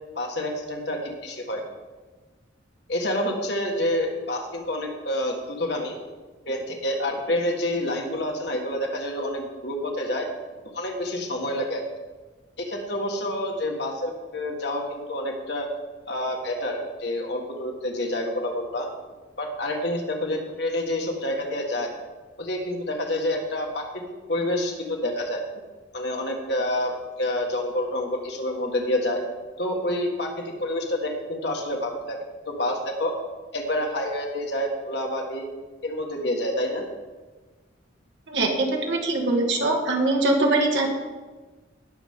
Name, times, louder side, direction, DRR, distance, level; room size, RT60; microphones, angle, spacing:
voice 1, 0.2-1.6 2.9-6.0 6.5-10.3 10.7-11.8 12.6-15.7 16.1-18.9 19.4-21.9 22.4-24.0 24.3-25.4 25.9-26.9 27.2-29.2 29.6-32.2 32.5-33.1 33.5-35.5 35.8-36.8, left 1 dB, 60° left, 1 dB, 1.7 m, -28 dB
voice 2, 38.3-40.9, right 2 dB, 70° right, 1 dB, 2.1 m, -22 dB
18.5 x 7.1 x 3.7 m, 1.3 s
head